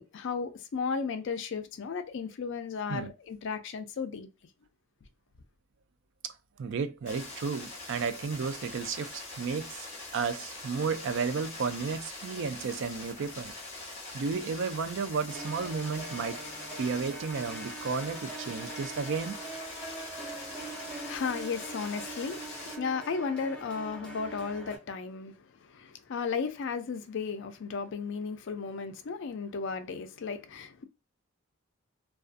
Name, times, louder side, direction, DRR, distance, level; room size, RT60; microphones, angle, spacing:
voice 1, 0.0-4.3 20.4-30.8, left 5 dB, 55° left, 0.4 m, -35 dB
voice 2, 6.6-9.9 10.1-13.5 14.1-16.4 16.8-19.4, right 5 dB, 55° right, 0.3 m, -33 dB
sound 1, 7.1-22.8, left 2 dB, 30° left, 0.9 m, -43 dB
sound 2, 15.3-24.8, right 2 dB, 5° left, 0.9 m, -43 dB
2.4 x 2.3 x 2.4 m
head